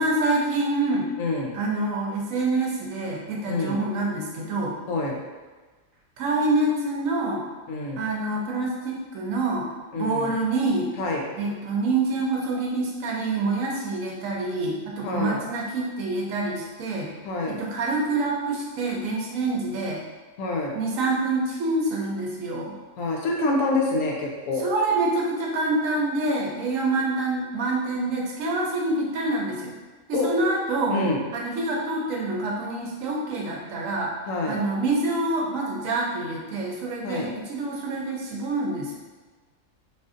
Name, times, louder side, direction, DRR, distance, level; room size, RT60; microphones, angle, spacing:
voice 1, 0.0-1.1 1.5-4.8 6.2-7.4 8.0-9.7 9.9-10.9 11.4-17.1 17.5-20.0 20.7-22.7 24.6-29.7 30.1-31.0 31.3-34.1 34.5-39.0, right 2 dB, 75° right, -1 dB, 1.1 m, -26 dB
voice 2, 1.2-1.5 3.5-3.8 4.9-5.2 7.7-8.0 9.9-10.3 11.0-11.2 15.0-15.4 17.2-17.6 20.4-20.8 23.0-24.6 30.1-30.3 30.9-31.2 34.3-34.6 37.0-37.3, left 2 dB, 75° left, -1 dB, 1.0 m, -26 dB
4.1 x 2.5 x 2.5 m, 1.3 s
omnidirectional pair, 1.4 m